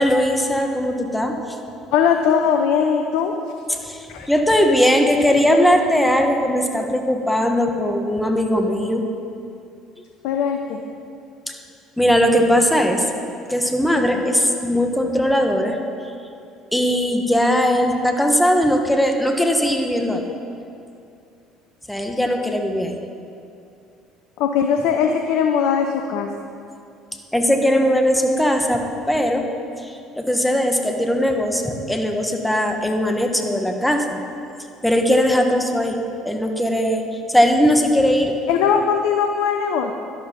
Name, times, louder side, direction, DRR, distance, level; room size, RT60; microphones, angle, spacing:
voice 1, 0.0-1.3 3.7-9.0 11.5-11.6 12.0-13.0 13.5-15.8 16.7-20.2 21.9-22.9 27.3-29.5 29.8-34.2 34.8-36.0 36.2-38.3, equal, 5° left, 3 dB, 1.7 m, -19 dB
voice 2, 1.9-3.3 4.1-4.3 10.2-10.8 24.4-26.3 38.5-39.9, left 7 dB, 70° left, 5 dB, 0.7 m, -20 dB
11.5 x 11.5 x 5.4 m, 2.5 s
hypercardioid pair, 60°, 0 cm